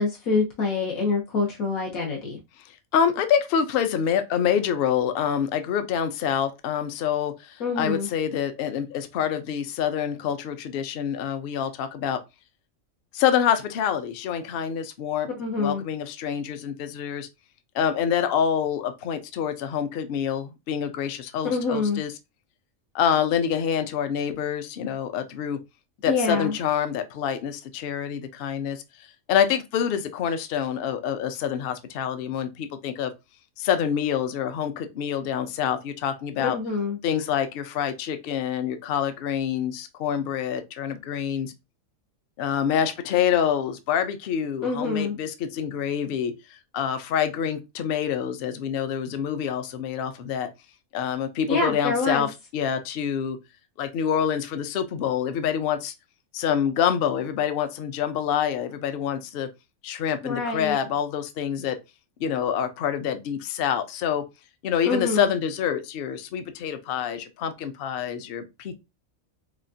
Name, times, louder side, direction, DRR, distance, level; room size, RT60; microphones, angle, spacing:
voice 1, 0.0-2.4 7.6-8.1 15.4-15.8 21.4-22.0 26.1-26.5 36.4-37.0 44.6-45.2 51.5-52.3 60.2-60.8 64.8-65.2, left 4 dB, 85° left, 1.4 m, -26 dB
voice 2, 2.9-12.2 13.1-15.3 15.6-17.3 17.7-22.1 22.9-25.6 26.0-28.8 29.3-33.1 33.6-36.6 37.0-41.5 42.4-50.5 50.9-53.4 53.8-55.9 56.3-59.5 59.8-61.8 62.2-64.2 64.6-68.8, left 8 dB, 60° left, 0.6 m, -26 dB
5.0 x 2.4 x 2.6 m
omnidirectional pair, 1.4 m